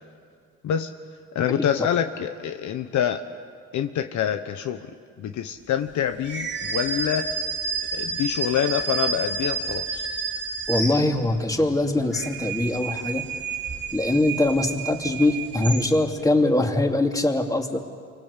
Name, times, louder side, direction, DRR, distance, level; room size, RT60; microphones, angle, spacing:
voice 1, 1.3-3.2 3.7-4.8 5.2-7.4 7.9-10.1, left 9 dB, 70° left, 7 dB, 1.2 m, -26 dB
sound 1, 6.2-11.5 12.0-16.2, right 5 dB, 35° right, 3.0 m, -30 dB
voice 2, 10.7-13.2 13.9-17.9, left 2 dB, 10° left, 3 dB, 3.0 m, -22 dB
29.0 x 24.5 x 8.4 m, 2.1 s
cardioid pair, 90°, 30 cm